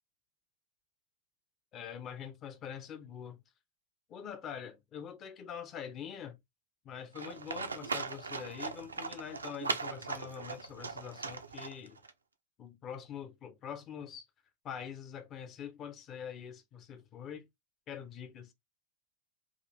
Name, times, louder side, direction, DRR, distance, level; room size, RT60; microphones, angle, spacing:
voice 1, 1.7-3.4 4.1-6.4 6.8-12.0 12.6-14.3 14.6-17.5 17.9-18.5, left 8 dB, 30° left, 0.7 m, -44 dB
Livestock farm animals working animals, 7.2-12.1, right 4 dB, 75° right, 0.5 m, -39 dB
3.8 x 2.5 x 3.1 m
figure-of-eight pair, 90°, 0 cm